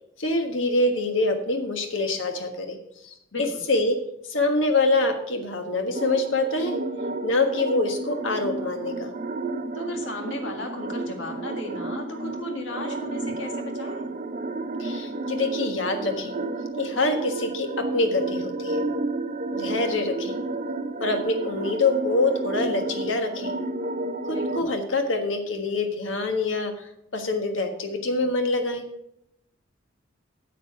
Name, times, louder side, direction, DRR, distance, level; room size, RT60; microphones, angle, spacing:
voice 1, 0.2-2.8 3.0-3.1 3.7-4.0 4.3-6.8 7.2-9.1 14.8-16.3 16.8-18.8 19.5-20.3 21.0-23.5 24.2-28.8, left 2 dB, 85° left, 5 dB, 1.4 m, -25 dB
voice 2, 3.3-3.6 9.7-14.1 24.3-24.6, left 1 dB, 70° left, 3 dB, 2.0 m, -35 dB
sound 1, 5.9-24.6, right 2 dB, 45° right, 0.7 m, -31 dB
9.2 x 7.5 x 4.8 m, 0.78 s
head